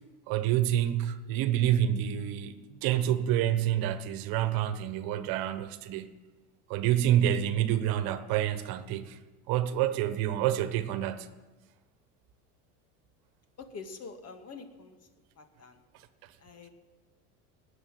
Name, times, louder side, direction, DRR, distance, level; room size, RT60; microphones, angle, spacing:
voice 1, 0.3-6.1 6.7-9.2 9.5-11.3, right 11 dB, 65° right, 1.3 m, -28 dB
voice 2, 13.6-15.0 15.4-15.8 16.4-16.7, left 4 dB, 40° left, 2.3 m, -45 dB
18.5 x 7.1 x 9.3 m
hypercardioid pair, 85°, 39 cm